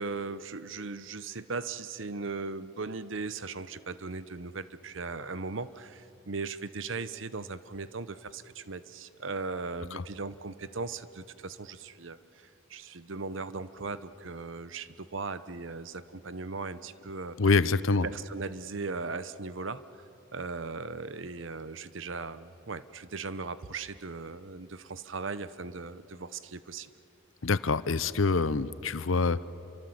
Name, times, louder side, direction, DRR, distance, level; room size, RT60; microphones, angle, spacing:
voice 1, 0.0-17.4 18.0-26.9, right 4 dB, 65° right, 14 dB, 0.9 m, -38 dB
voice 2, 17.4-18.1 27.4-29.4, left 4 dB, 75° left, 16 dB, 0.8 m, -25 dB
29.0 x 24.5 x 7.9 m, 2.9 s
head